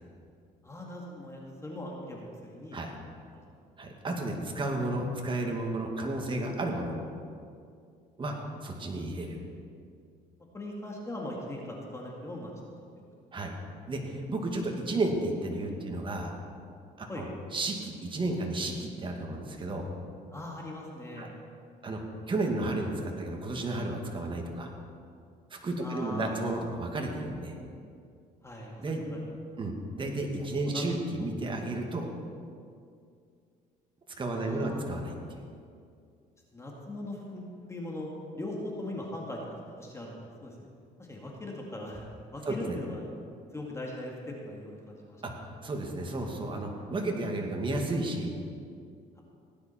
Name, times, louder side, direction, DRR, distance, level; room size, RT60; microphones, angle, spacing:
voice 1, 0.6-2.8 3.3-3.4 8.2-8.4 10.5-12.5 13.0-13.1 17.1-17.2 20.3-21.4 25.8-26.4 28.4-29.2 30.6-30.8 34.3-34.9 36.5-38.1 38.3-39.4 39.8-40.7 41.0-42.0 42.3-43.1 43.5-45.2, left 1 dB, 15° left, -2 dB, 2.0 m, -40 dB
voice 2, 3.8-7.0 8.2-8.3 8.6-9.4 13.3-13.5 13.9-16.3 17.0-19.9 21.2-21.3 21.8-24.7 25.5-27.6 28.8-29.0 29.6-32.1 34.2-35.1 42.5-42.8 45.2-45.3 45.6-48.3, right 2 dB, 30° right, 1 dB, 2.1 m, -32 dB
17.5 x 9.9 x 4.5 m, 2.3 s
cardioid pair, 110°, 17 cm